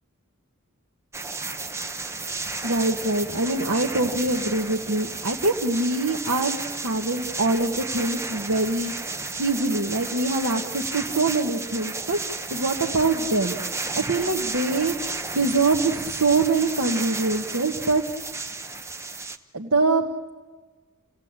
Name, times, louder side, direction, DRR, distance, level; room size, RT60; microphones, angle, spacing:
sound 1, 1.1-19.4, right 3 dB, 15° right, 1.0 m, -33 dB
voice 1, 2.6-6.6 6.8-8.9 9.4-12.2 12.5-13.6 14.0-15.0 15.3-18.0 19.5-20.0, right 3 dB, 70° right, 0 dB, 1.4 m, -24 dB
29.0 x 17.5 x 8.8 m, 1.4 s
head